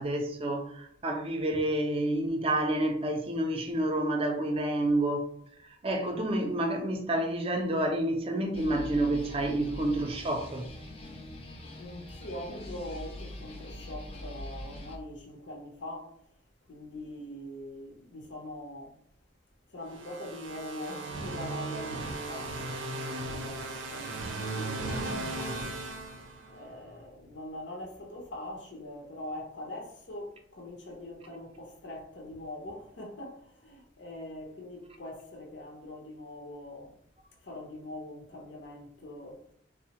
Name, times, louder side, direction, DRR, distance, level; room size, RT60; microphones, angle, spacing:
voice 1, 0.0-5.3 5.8-10.7, right 1 dB, 30° right, 0.4 m, -29 dB
sound 1, 8.5-15.0, left 1 dB, 30° left, 0.5 m, -43 dB
voice 2, 11.8-16.1 16.7-18.9 19.7-22.5 23.3-25.7 26.5-36.9 37.4-39.4, left 1 dB, 70° left, 0.6 m, -43 dB
sound 2, 19.9-26.8, right 2 dB, 85° right, 0.5 m, -37 dB
3.3 x 2.0 x 2.8 m
head